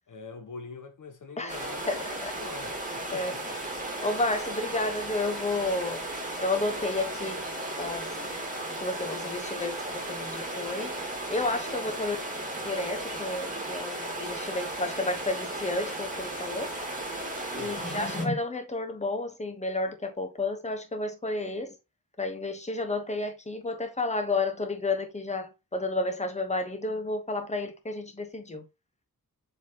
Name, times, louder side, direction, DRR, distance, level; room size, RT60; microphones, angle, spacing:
voice 1, 0.1-3.4 17.5-18.0, left 4 dB, 60° left, 0.9 m, -44 dB
voice 2, 1.4-2.3 3.1-3.3 4.0-6.1 6.4-7.4 7.8-8.2 8.7-10.9 11.3-12.2 12.6-16.7 17.5-21.8 22.2-28.6, left 2 dB, 20° left, 1.1 m, -31 dB
sound 1, 1.5-18.3, right 1 dB, 25° right, 2.0 m, -35 dB
7.1 x 4.5 x 2.9 m
wide cardioid pair, 135°, 35 cm